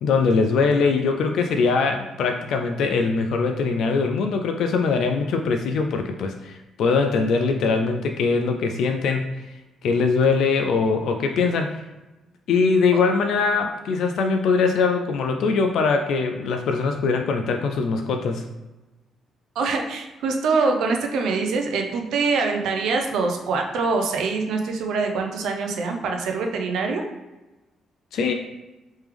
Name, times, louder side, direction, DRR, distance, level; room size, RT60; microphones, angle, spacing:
voice 1, 0.0-9.3 9.8-11.8 12.5-18.4 28.1-28.3, left 4 dB, 75° left, 4 dB, 0.3 m, -22 dB
voice 2, 19.6-27.0, right 4 dB, 80° right, 3 dB, 0.6 m, -24 dB
3.4 x 3.1 x 3.3 m, 1.1 s
cardioid pair, 90°, 0 cm